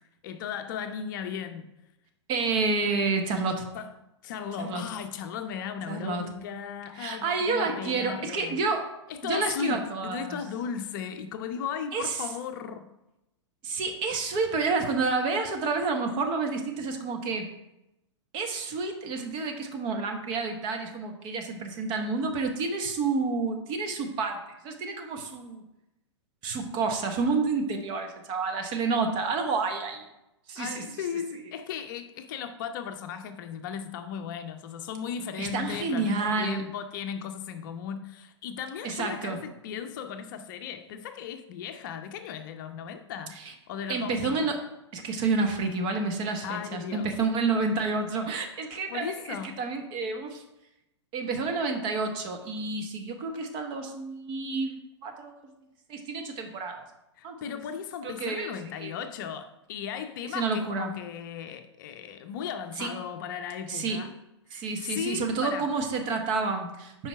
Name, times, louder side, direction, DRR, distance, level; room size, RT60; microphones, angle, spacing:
voice 1, 0.2-1.7 3.7-3.9 4.2-8.6 9.1-12.9 30.6-43.4 43.7-44.5 46.4-47.1 48.9-49.6 57.2-64.1 64.5-65.7, left 8 dB, 45° left, 0.6 m, -36 dB
voice 2, 2.3-3.7 4.6-4.8 5.9-6.2 7.0-8.9 9.2-10.4 11.9-12.2 13.6-17.5 18.3-24.4 24.6-25.6 26.4-30.0 30.5-30.8 31.4-31.5 35.4-36.7 38.8-39.4 43.4-43.5 43.9-44.6 44.9-50.4 51.1-55.5 55.9-56.8 57.2-57.4 58.0-58.5 58.8-58.9 60.3-60.9 62.8-62.9 63.7-64.0 64.5-67.1, right 4 dB, 35° right, 1.1 m, -29 dB
7.2 x 4.9 x 4.6 m
figure-of-eight pair, 105°, 15 cm